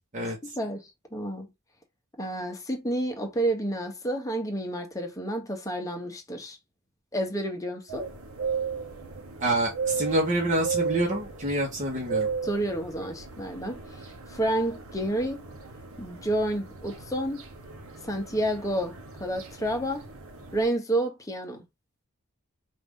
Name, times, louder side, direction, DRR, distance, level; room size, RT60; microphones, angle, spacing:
voice 1, 0.4-0.8 1.1-1.5 2.2-6.6 7.1-8.1 12.4-13.8 14.3-15.4 16.0-17.4 18.1-20.0 20.5-21.6, right 1 dB, 15° left, 1.0 m, -30 dB
sound 1, 7.9-20.7, right 5 dB, 75° right, 0.9 m, -36 dB
voice 2, 9.4-12.3, right 1 dB, 35° right, 1.1 m, -27 dB
4.8 x 2.6 x 3.6 m
head